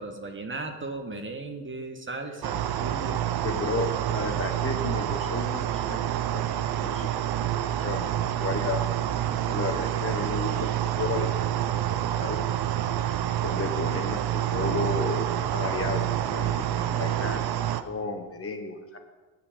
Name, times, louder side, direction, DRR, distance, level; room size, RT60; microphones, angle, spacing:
voice 1, 0.0-3.2, right 2 dB, 30° right, 5 dB, 1.4 m, -36 dB
sound 1, 2.4-17.8, right 11 dB, 60° right, 0.7 m, -28 dB
voice 2, 3.4-7.1 7.4-8.8 9.5-11.3 11.5-11.6 11.9-12.4 13.4-17.4 17.8-19.0, left 3 dB, 30° left, 5 dB, 1.1 m, -33 dB
7.8 x 6.3 x 7.2 m, 1.3 s
supercardioid pair, 70°, 42 cm